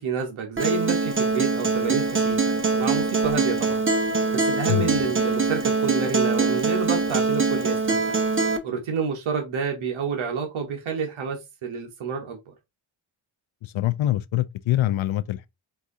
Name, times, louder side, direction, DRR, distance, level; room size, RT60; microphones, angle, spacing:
voice 1, 0.0-8.2 8.6-12.4, right 5 dB, 70° right, 1.2 m, -29 dB
Acoustic guitar, 0.6-8.6, right 4 dB, 25° right, 0.9 m, -23 dB
voice 2, 13.6-15.5, left 14 dB, 70° left, 0.5 m, -24 dB
4.7 x 2.7 x 3.6 m
cardioid pair, 90°, 49 cm